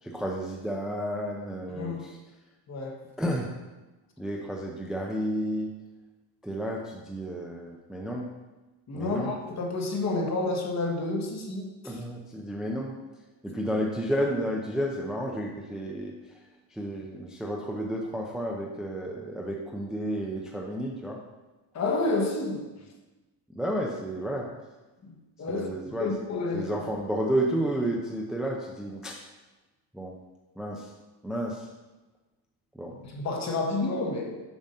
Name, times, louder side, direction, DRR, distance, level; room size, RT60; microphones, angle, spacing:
voice 1, 0.0-2.2 3.2-3.5 4.2-5.7 6.4-8.3 8.9-9.3 11.8-13.0 13.4-16.4 16.7-21.2 23.5-24.5 25.5-26.1 26.5-29.2 29.9-30.1 30.6-30.9 31.2-31.7 32.7-33.0, equal, ahead, -2 dB, 0.5 m, -31 dB
voice 2, 1.7-2.0 2.7-3.1 8.9-12.0 21.7-22.7 25.0-25.1 25.4-25.7 26.0-26.7 33.1-34.4, left 2 dB, 35° left, 1 dB, 1.1 m, -30 dB
7.1 x 2.6 x 5.5 m, 1.1 s
cardioid pair, 110°, 47 cm